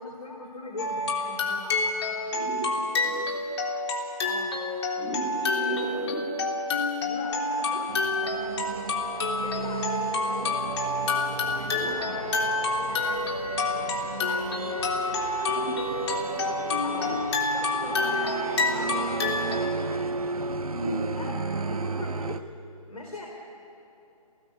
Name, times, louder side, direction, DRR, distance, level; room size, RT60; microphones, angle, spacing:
voice 1, 0.0-2.1 4.2-4.6 7.0-8.5 9.4-10.8 11.4-14.7 16.8-19.1 21.2-22.4 22.9-23.3, left 2 dB, 70° left, 0 dB, 3.9 m, -40 dB
sound 1, 0.8-19.6, left 3 dB, 45° left, 3.3 m, -28 dB
voice 2, 2.2-3.3 4.9-6.2 11.6-11.9 15.4-15.8 16.2-17.2 20.7-21.0, right 1 dB, 15° right, -8 dB, 6.0 m, -36 dB
sound 2, 7.9-22.4, right 4 dB, 70° right, 0.9 m, -34 dB
27.5 x 18.5 x 8.5 m, 2.9 s
figure-of-eight pair, 140°, 19 cm